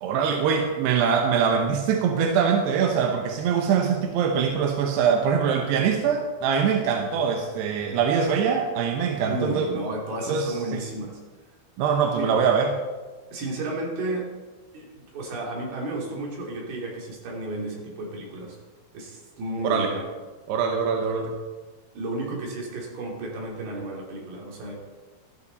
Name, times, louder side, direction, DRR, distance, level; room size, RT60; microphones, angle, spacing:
voice 1, 0.0-9.7 10.3-10.8 11.8-12.8 19.6-19.9 20.5-21.3, right 6 dB, 75° right, 3 dB, 2.6 m, -23 dB
voice 2, 9.2-11.2 12.1-12.3 13.3-14.3 14.7-18.6 18.9-20.0 21.9-24.7, right 2 dB, 55° right, -1 dB, 4.5 m, -32 dB
17.0 x 12.5 x 4.1 m, 1.3 s
omnidirectional pair, 5.9 m